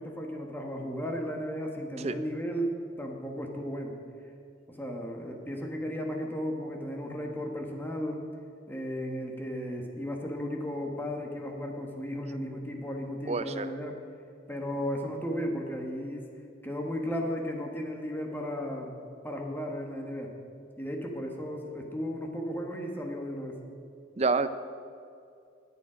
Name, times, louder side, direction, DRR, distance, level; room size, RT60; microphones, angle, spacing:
voice 1, 0.0-4.0 4.7-8.2 8.7-14.0 14.5-16.3 16.6-18.9 19.2-20.3 20.8-23.6, equal, 10° left, 1 dB, 1.3 m, -35 dB
voice 2, 13.3-13.7 24.2-24.5, right 4 dB, 35° right, 12 dB, 0.5 m, -27 dB
20.0 x 7.2 x 5.1 m, 2.4 s
head